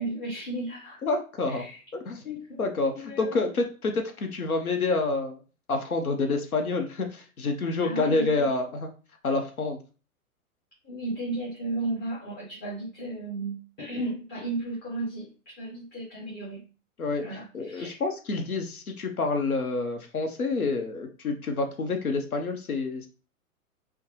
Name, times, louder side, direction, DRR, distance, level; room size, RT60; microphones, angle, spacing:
voice 1, 0.0-1.0 1.5-1.8 2.2-3.6 7.8-8.5 10.8-16.7 17.2-18.0, right 2 dB, 20° left, -7 dB, 1.5 m, -34 dB
voice 2, 1.0-1.7 2.1-2.2 2.6-5.4 5.7-8.9 9.2-9.8 17.0-17.2 17.5-23.1, left 3 dB, 80° left, 5 dB, 0.8 m, -28 dB
5.3 x 2.2 x 3.1 m, 0.35 s
figure-of-eight pair, 105°, 43 cm